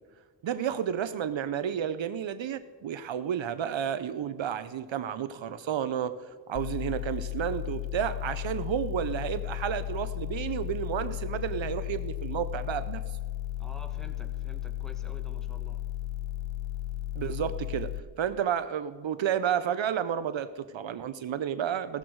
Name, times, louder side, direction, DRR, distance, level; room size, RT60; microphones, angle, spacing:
voice 1, 0.4-6.1 6.5-13.0 17.2-17.9 18.2-22.0, right 9 dB, 70° right, 13 dB, 0.7 m, -31 dB
sound 1, 6.5-18.0, left 14 dB, 75° left, 0.8 m, -35 dB
voice 2, 13.6-15.8, equal, ahead, 4 dB, 1.6 m, -49 dB
15.5 x 13.5 x 4.7 m, 1.4 s
cardioid pair, 70°, 47 cm